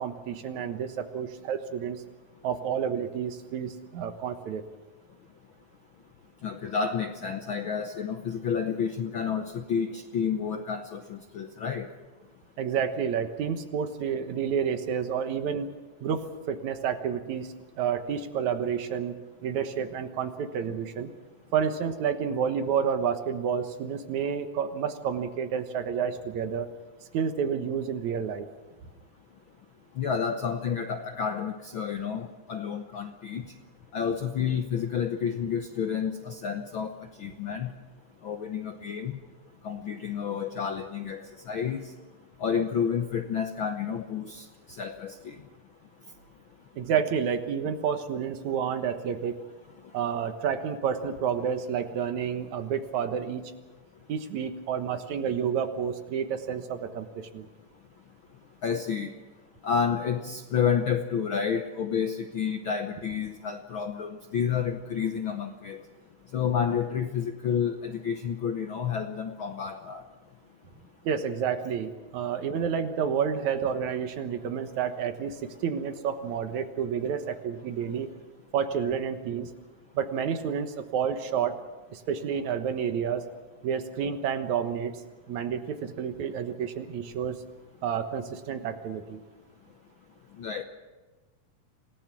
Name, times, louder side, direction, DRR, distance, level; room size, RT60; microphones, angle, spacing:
voice 1, 0.0-2.0 2.4-4.6 12.6-15.7 16.0-19.2 19.4-21.1 21.5-26.7 27.1-28.5 46.8-49.4 49.9-53.5 54.1-57.5 71.0-78.1 78.5-79.5 79.9-81.6 81.9-83.2 83.6-84.9 85.3-87.4 87.8-89.2, right 7 dB, 70° right, 8 dB, 2.5 m, -30 dB
voice 2, 6.4-11.9 30.0-33.4 33.9-36.9 37.2-37.7 38.2-39.2 39.6-41.9 42.4-45.3 58.6-59.1 59.6-65.8 66.3-70.0 90.4-90.6, left 7 dB, 75° left, 6 dB, 1.1 m, -30 dB
27.0 x 18.0 x 6.1 m, 1.2 s
omnidirectional pair, 3.6 m